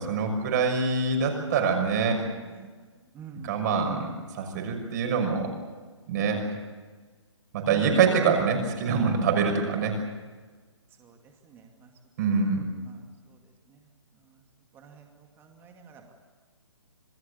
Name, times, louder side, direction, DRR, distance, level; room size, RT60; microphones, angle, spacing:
voice 1, 0.0-2.2 3.4-5.5 6.1-6.4 7.5-10.0 12.2-12.6, right 5 dB, 35° right, 3 dB, 6.0 m, -25 dB
voice 2, 3.1-3.5 7.6-8.0 11.0-11.2 11.4-11.9 12.8-13.0 14.7-15.1 15.4-16.0, right 5 dB, 15° right, 3 dB, 2.3 m, -46 dB
27.5 x 20.0 x 8.4 m, 1.4 s
hypercardioid pair, 145°, 16 cm